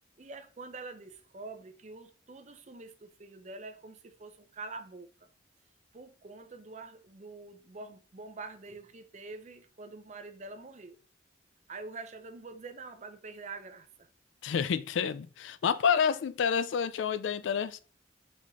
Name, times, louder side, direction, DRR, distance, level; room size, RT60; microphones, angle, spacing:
voice 1, 0.2-5.3 5.9-11.0 11.7-14.1, right 3 dB, 35° right, 0.5 m, -46 dB
voice 2, 14.4-17.8, left 7 dB, 75° left, 0.3 m, -29 dB
4.1 x 3.6 x 3.1 m
head